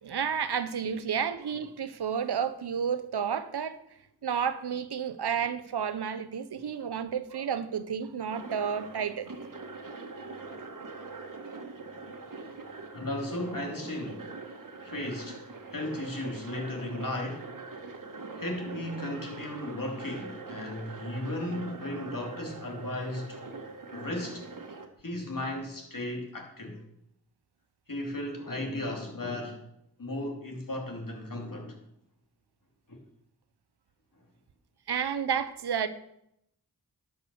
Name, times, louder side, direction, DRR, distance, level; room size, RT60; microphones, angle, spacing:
voice 1, 0.0-3.8 4.2-9.3 34.9-35.9, right 7 dB, 80° right, 0.8 m, -31 dB
sound 1, 8.3-24.9, right 3 dB, 55° right, 1.5 m, -43 dB
voice 2, 12.9-14.3 14.8-15.4 15.7-17.5 18.4-23.4 23.9-24.5 25.0-26.8 27.9-29.6 30.0-31.8 32.9-33.0, left 1 dB, 55° left, 3.1 m, -35 dB
11.5 x 6.1 x 7.0 m
cardioid pair, 40°, 39 cm